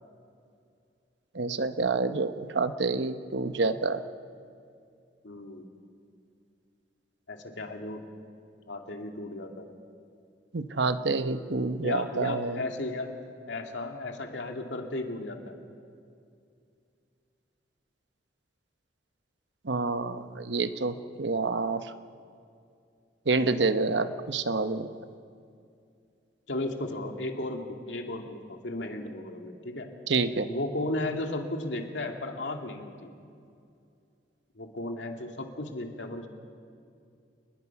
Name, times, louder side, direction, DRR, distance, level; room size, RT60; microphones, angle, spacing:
voice 1, 1.3-4.0 10.5-12.6 19.6-21.9 23.3-24.9 30.1-30.5, right 3 dB, 75° right, 10 dB, 1.0 m, -28 dB
voice 2, 5.2-5.7 7.3-8.0 8.7-9.7 11.8-13.1 13.5-15.5 26.5-29.9 30.5-33.1 34.6-36.3, left 2 dB, 80° left, 3 dB, 2.4 m, -35 dB
29.5 x 20.5 x 6.0 m, 2.4 s
head